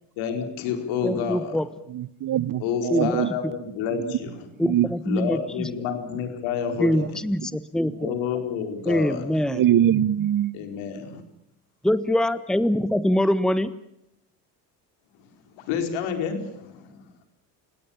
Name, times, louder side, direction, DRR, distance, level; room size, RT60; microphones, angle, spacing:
voice 1, 0.2-1.6 2.6-4.5 5.0-7.2 8.0-9.4 10.5-11.2 15.2-15.3 15.5-17.1, left 7 dB, 75° left, 6 dB, 4.5 m, -29 dB
voice 2, 1.0-1.7 2.9-3.1 4.6-5.7 6.8-7.9 8.9-9.6 11.8-13.8, left 1 dB, ahead, 15 dB, 1.2 m, -23 dB
voice 3, 1.9-3.3 4.6-4.9 9.5-10.6, right 11 dB, 45° right, 22 dB, 1.0 m, -22 dB
29.0 x 18.0 x 7.2 m, 0.78 s
hypercardioid pair, 70°, 48 cm